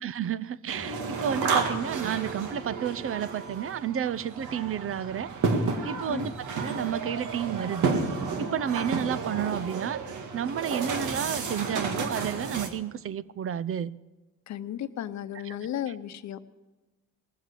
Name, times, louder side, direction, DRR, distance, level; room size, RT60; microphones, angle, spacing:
voice 1, 0.0-8.0 8.4-10.0 10.3-14.0 15.4-15.9, right 9 dB, 45° right, 18 dB, 0.5 m, -31 dB
sound 1, 0.7-12.7, right 4 dB, 75° right, 2.0 m, -31 dB
voice 2, 14.5-16.4, left 11 dB, 65° left, 12 dB, 0.9 m, -34 dB
19.5 x 7.6 x 8.3 m, 1.2 s
cardioid pair, 90°, 30 cm